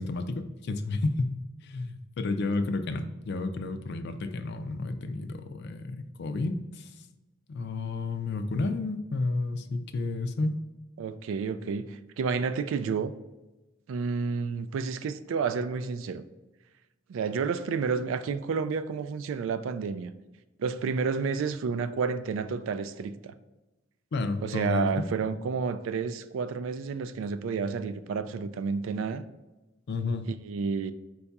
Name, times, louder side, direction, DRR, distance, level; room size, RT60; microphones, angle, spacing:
voice 1, 0.0-6.9 7.5-10.5 24.1-25.0 29.9-30.2, left 3 dB, 55° left, 0.4 m, -31 dB
voice 2, 11.0-13.1 13.9-16.3 17.1-20.1 20.6-23.3 24.4-29.2 30.4-30.9, right 5 dB, 75° right, 0.3 m, -30 dB
4.6 x 2.3 x 4.0 m
head